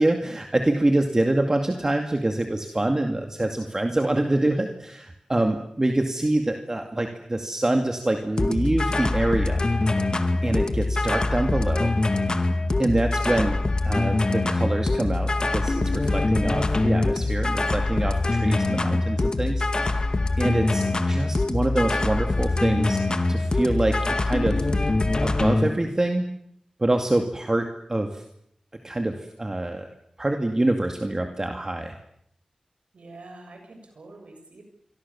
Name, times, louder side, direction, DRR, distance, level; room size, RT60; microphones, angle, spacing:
voice 1, 0.0-9.6 10.4-11.9 12.8-13.6 13.8-20.1 20.4-23.0 23.3-24.7 25.2-26.3 26.8-28.2 28.8-29.9 30.2-31.9, right 1 dB, 25° right, 4 dB, 2.3 m, -25 dB
sound 1, 8.4-25.7, left 2 dB, 40° left, 2.2 m, -24 dB
voice 2, 32.9-34.6, right 2 dB, 85° right, 4 dB, 7.0 m, -45 dB
28.0 x 23.5 x 7.2 m, 0.75 s
wide cardioid pair, 100°, 2 cm